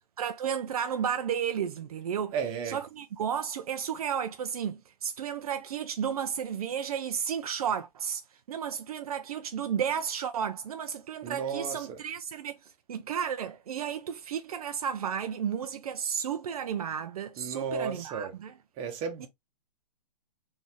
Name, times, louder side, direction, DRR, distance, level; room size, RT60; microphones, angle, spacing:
voice 1, 0.2-2.3 2.7-8.2 8.5-12.6 12.9-18.5 19.2-19.3, right 8 dB, 65° right, 0.5 m, -33 dB
voice 2, 2.3-2.8 11.2-12.0 17.4-18.3 18.8-19.3, right 6 dB, 25° right, 0.9 m, -34 dB
3.9 x 2.7 x 3.0 m
hypercardioid pair, 135°, 21 cm